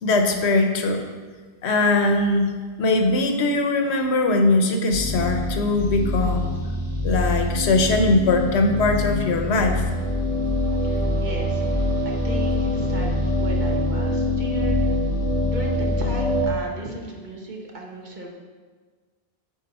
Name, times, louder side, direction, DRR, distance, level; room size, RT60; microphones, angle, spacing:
voice 1, 0.0-1.1 1.6-2.5 2.8-6.5 7.0-9.8, left 2 dB, 85° left, 5 dB, 1.0 m, -21 dB
sound 1, 4.9-16.5, left 1 dB, 5° left, 1.4 m, -24 dB
voice 2, 10.8-15.1 15.4-18.3, right 1 dB, 45° right, 0 dB, 1.1 m, -36 dB
8.6 x 4.3 x 4.1 m, 1.5 s
omnidirectional pair, 1.1 m